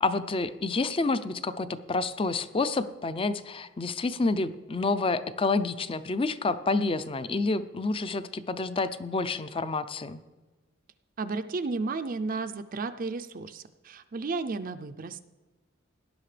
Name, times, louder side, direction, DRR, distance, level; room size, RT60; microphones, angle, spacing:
voice 1, 0.0-10.2, left 3 dB, 25° left, 13 dB, 0.5 m, -29 dB
voice 2, 11.2-15.2, right 3 dB, 45° right, 9 dB, 0.4 m, -33 dB
18.0 x 11.0 x 3.3 m, 1.2 s
head